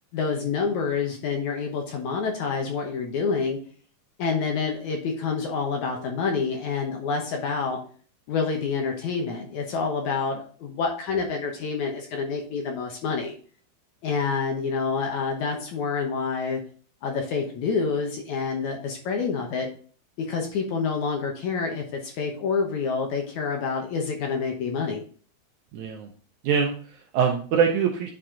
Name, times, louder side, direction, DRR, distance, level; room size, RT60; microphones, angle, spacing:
voice 1, 0.1-3.6 4.2-7.8 8.3-13.4 14.0-16.6 17.0-19.7 20.2-25.0, left 5 dB, 65° left, 2 dB, 2.1 m, -27 dB
voice 2, 25.7-26.1 26.4-28.1, right 7 dB, 75° right, 2 dB, 1.8 m, -24 dB
9.5 x 4.2 x 3.8 m, 0.43 s
omnidirectional pair, 4.2 m